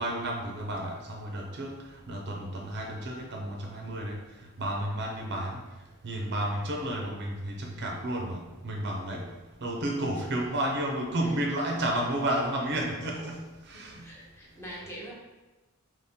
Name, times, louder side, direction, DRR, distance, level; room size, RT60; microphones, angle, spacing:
voice 1, 0.0-1.8 2.1-4.2 4.6-5.6 6.0-9.3 9.6-14.1, right 1 dB, 50° right, 1 dB, 0.6 m, -32 dB
voice 2, 13.9-15.1, equal, 10° left, -4 dB, 0.9 m, -43 dB
4.2 x 3.0 x 3.6 m, 1.1 s
head